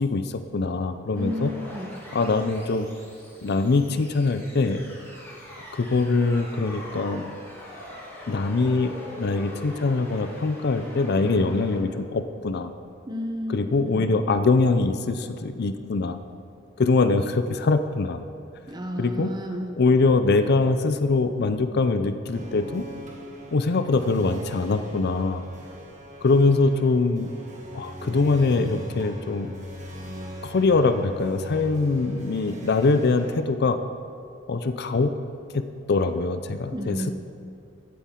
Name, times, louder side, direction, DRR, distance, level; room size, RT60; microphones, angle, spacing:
voice 1, 0.0-1.5 2.1-2.9 3.4-4.8 5.7-7.3 8.3-12.7 13.5-16.2 16.8-18.2 19.0-19.3 19.8-22.8 23.5-25.4 26.2-27.3 27.7-29.5 30.4-33.8 34.5-35.1 35.5-35.6 35.9-37.1, left 3 dB, 55° left, 10 dB, 0.5 m, -23 dB
sound 1, 1.1-11.8, equal, 10° left, 2.7 m, -42 dB
voice 2, 1.1-1.9 13.1-14.1 18.7-19.8 36.7-37.1, equal, 20° right, 3 dB, 1.0 m, -32 dB
sound 2, 22.3-33.4, equal, 40° right, 1.5 m, -40 dB
15.5 x 8.4 x 3.8 m, 2.5 s
head